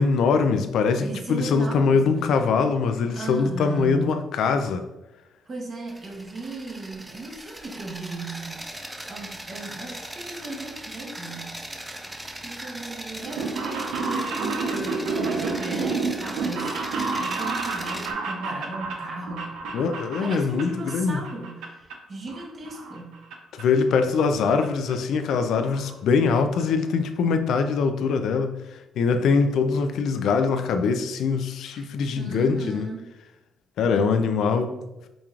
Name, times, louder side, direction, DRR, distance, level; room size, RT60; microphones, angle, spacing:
voice 1, 0.0-4.8 19.7-21.2 23.5-28.6 29.0-32.9 33.8-34.7, left 5 dB, 75° left, 8 dB, 0.4 m, -23 dB
voice 2, 1.0-2.4 3.1-4.1 5.5-8.7 9.1-11.6 12.4-16.8 17.1-19.6 20.2-23.2 31.7-31.9 32.2-33.1 33.8-34.2, right 3 dB, 40° right, 1 dB, 0.9 m, -36 dB
sound 1, 5.9-18.1, right 1 dB, 10° right, 0.4 m, -39 dB
sound 2, 13.2-21.0 21.2-21.9 22.3-23.3 23.6-23.7 24.6-24.7 24.9-25.0 25.3-25.4 25.7-25.9 26.3-26.4 26.6-26.7, right 4 dB, 85° right, 0.6 m, -30 dB
5.1 x 2.9 x 2.4 m, 0.98 s
cardioid pair, 95°, 0 cm